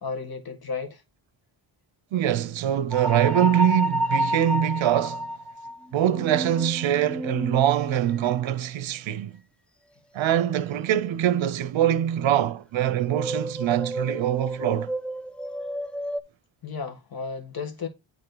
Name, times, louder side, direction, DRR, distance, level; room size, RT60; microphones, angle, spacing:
voice 1, 0.0-1.0 16.6-17.9, left 5 dB, 50° left, 1.8 m, -33 dB
voice 2, 2.1-5.2 5.9-9.3 10.1-14.9, right 11 dB, 70° right, 0.8 m, -23 dB
sound 1, 2.9-8.6 13.1-16.2, equal, 5° left, 0.3 m, -30 dB
9.4 x 3.6 x 3.9 m
wide cardioid pair, 135°, 47 cm